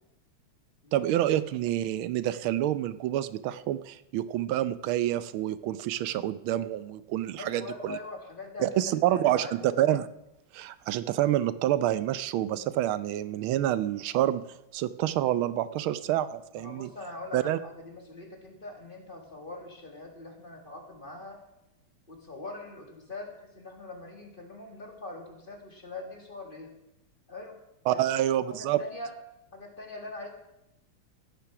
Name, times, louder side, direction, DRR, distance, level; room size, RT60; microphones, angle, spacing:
voice 1, 0.9-8.0 8.6-10.1 10.5-14.4 14.7-16.9 17.3-17.6 27.9-28.8, right 12 dB, 90° right, 15 dB, 1.5 m, -28 dB
voice 2, 7.4-9.6 16.5-21.4 22.1-26.7 27.3-27.6 27.9-28.0 28.5-29.1 29.5-30.3, left 2 dB, 25° left, 3 dB, 2.0 m, -42 dB
15.0 x 10.5 x 6.0 m, 0.89 s
omnidirectional pair, 2.2 m